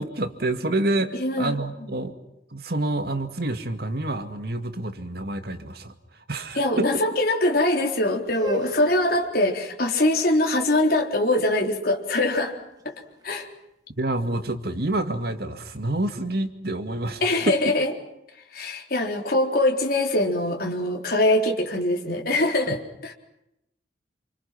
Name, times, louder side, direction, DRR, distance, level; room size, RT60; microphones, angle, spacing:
voice 1, 0.0-2.1 2.5-5.9 6.3-7.0 14.0-17.7 22.7-22.8, right 2 dB, 60° right, 7 dB, 2.3 m, -28 dB
voice 2, 1.2-1.5 1.8-1.9 6.5-12.6 12.8-12.9 13.2-13.5 17.2-17.9 18.5-23.1, left 1 dB, 55° left, 1 dB, 4.1 m, -23 dB
sound 1, 8.2-14.1, right 2 dB, 20° right, 3.3 m, -41 dB
28.0 x 28.0 x 6.0 m, 0.84 s
head